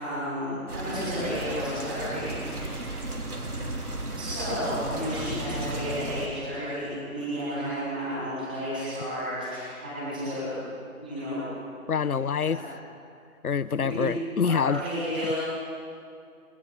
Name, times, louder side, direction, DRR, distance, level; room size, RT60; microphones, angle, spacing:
voice 1, 0.0-2.9 3.3-3.4 4.2-10.5 11.0-11.4 12.4-12.6 13.8-14.0 14.4-15.3, equal, 5° right, -13 dB, 3.8 m, -32 dB
sound 1, 0.7-6.3, right 2 dB, 85° right, 3.5 m, -34 dB
voice 2, 11.9-12.6 13.4-14.8, left 6 dB, 75° left, 17 dB, 0.7 m, -26 dB
29.5 x 28.5 x 4.7 m, 2.4 s
figure-of-eight pair, 180°, 44 cm